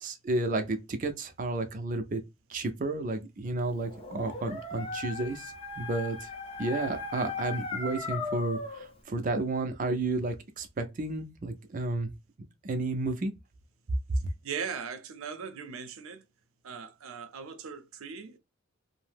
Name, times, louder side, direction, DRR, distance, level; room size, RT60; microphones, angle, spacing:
voice 1, 0.0-2.2 2.5-6.3 6.6-12.1 12.6-13.3, right 2 dB, 40° right, 0.4 m, -32 dB
Dog, 3.8-8.9, left 3 dB, 25° left, 0.5 m, -37 dB
voice 2, 14.4-16.2 16.6-18.4, right 6 dB, 90° right, 0.5 m, -39 dB
2.7 x 2.0 x 3.3 m
head